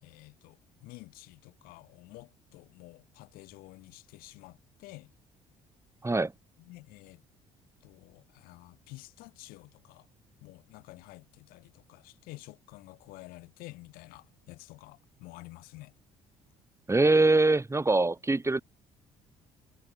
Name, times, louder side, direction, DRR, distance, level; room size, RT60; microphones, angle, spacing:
voice 1, 0.0-5.1 6.7-7.2 7.8-10.1 10.4-15.9, left 21 dB, 75° left, 4.7 m, -50 dB
voice 2, 16.9-18.6, right 2 dB, 20° right, 5.7 m, -23 dB
hypercardioid pair, 55°, 15 cm